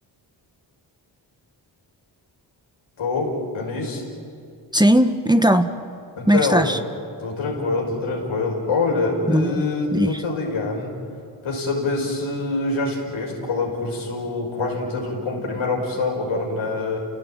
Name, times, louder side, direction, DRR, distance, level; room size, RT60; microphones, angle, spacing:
voice 1, 3.0-4.0 6.2-6.7 7.2-10.9 11.4-17.0, left 3 dB, 80° left, -1 dB, 5.6 m, -25 dB
voice 2, 4.7-5.7 6.3-6.8 9.3-10.2, equal, 10° right, 8 dB, 1.5 m, -18 dB
30.0 x 17.0 x 9.0 m, 2.4 s
supercardioid pair, 40°, 47 cm